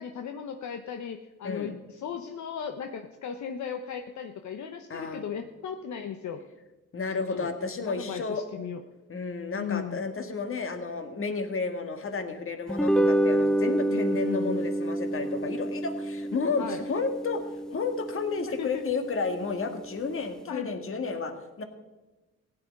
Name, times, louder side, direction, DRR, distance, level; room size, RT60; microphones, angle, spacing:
voice 1, 0.0-6.4 7.3-7.5 7.9-8.8 9.5-10.1 13.9-14.7 16.6-16.8 18.6-18.8 20.5-20.7, left 7 dB, 65° left, 6 dB, 0.9 m, -36 dB
voice 2, 4.9-5.3 6.9-8.4 9.1-17.4 17.7-21.6, left 4 dB, 45° left, 6 dB, 1.7 m, -32 dB
sound 1, 12.7-19.2, right 1 dB, ahead, 0.3 m, -28 dB
16.0 x 9.7 x 5.3 m, 1.2 s
cardioid pair, 95°, 30 cm